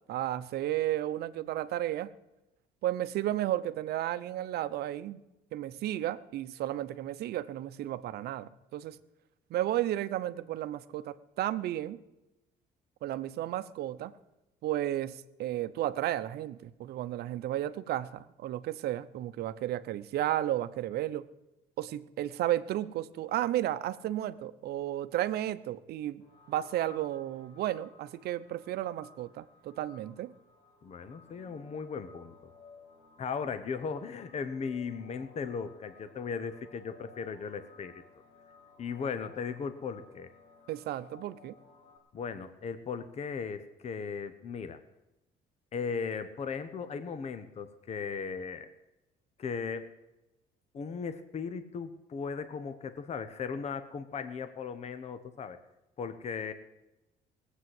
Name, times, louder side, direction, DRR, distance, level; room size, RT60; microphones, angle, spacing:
voice 1, 0.1-2.1 2.8-5.2 5.5-9.0 9.5-12.0 13.0-14.1 14.6-21.2 21.8-26.2 26.5-30.3 40.7-41.6, right 13 dB, 70° right, 13 dB, 0.7 m, -33 dB
sound 1, 26.2-42.0, left 4 dB, 70° left, 4.1 m, -58 dB
voice 2, 30.8-32.3 33.2-38.0 38.8-40.3 42.1-44.8 45.7-48.7 49.4-49.9 50.7-55.6 56.0-56.5, left 5 dB, 40° left, 11 dB, 0.9 m, -37 dB
18.0 x 8.2 x 7.8 m, 0.98 s
cardioid pair, 110°, 17 cm